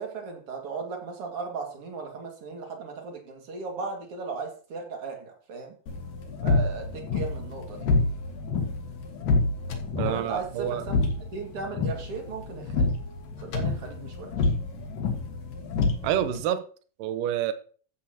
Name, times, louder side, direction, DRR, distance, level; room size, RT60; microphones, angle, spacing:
voice 1, 0.0-5.7 6.4-7.9 10.0-11.0 11.3-12.9 13.4-14.5, right 4 dB, 45° right, 2.7 m, -36 dB
sound 1, 5.9-16.4, left 3 dB, 75° left, 3.1 m, -28 dB
voice 2, 10.0-10.8 16.0-16.6 17.0-17.5, right 10 dB, 80° right, 2.4 m, -27 dB
14.0 x 7.9 x 2.9 m
omnidirectional pair, 4.0 m